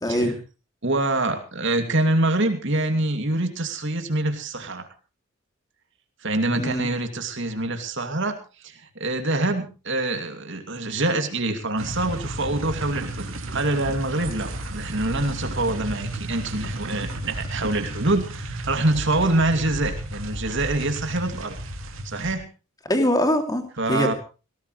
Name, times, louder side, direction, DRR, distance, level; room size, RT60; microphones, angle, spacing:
voice 1, 0.0-0.4 6.5-6.9 22.9-24.1, left 1 dB, 20° left, 5 dB, 2.8 m, -23 dB
voice 2, 0.8-4.9 6.2-8.4 8.6-21.6 22.0-22.5 23.8-24.1, right 2 dB, 60° right, 6 dB, 2.7 m, -25 dB
sound 1, 11.8-22.3, right 1 dB, 75° right, 2.3 m, -33 dB
18.5 x 18.0 x 3.2 m, 0.33 s
head